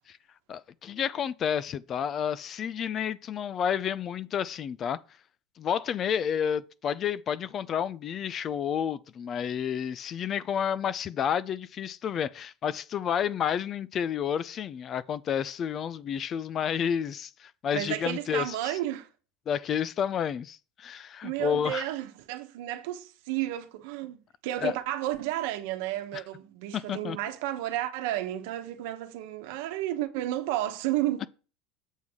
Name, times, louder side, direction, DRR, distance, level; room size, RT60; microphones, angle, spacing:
voice 1, 0.5-5.0 5.6-18.8 19.5-21.9 24.6-24.7 26.1-26.2 26.7-27.2, left 8 dB, 35° left, 0.4 m, -30 dB
voice 2, 17.7-19.1 21.2-31.2, right 14 dB, 75° right, 1.0 m, -32 dB
7.3 x 6.1 x 3.7 m
supercardioid pair, 130°, 0 cm